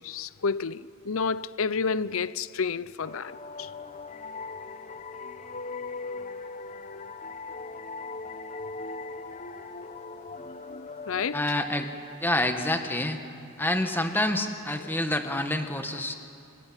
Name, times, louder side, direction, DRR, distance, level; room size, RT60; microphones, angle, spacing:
voice 1, 0.0-3.7 11.1-11.5, left 5 dB, 65° left, 0.6 m, -30 dB
sound 1, 3.0-12.4, left 3 dB, 35° left, 0.9 m, -40 dB
voice 2, 11.3-11.9 12.2-13.2 13.6-16.1, left 1 dB, 10° left, 1.6 m, -27 dB
27.0 x 21.0 x 8.9 m
head